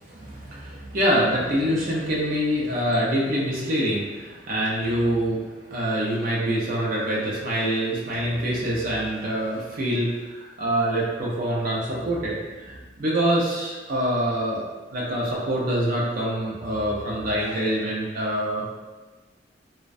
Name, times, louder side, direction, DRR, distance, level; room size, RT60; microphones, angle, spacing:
voice 1, 0.0-14.7 14.9-18.6, right 1 dB, 50° right, -5 dB, 0.5 m, -25 dB
2.4 x 2.1 x 2.4 m, 1.2 s
head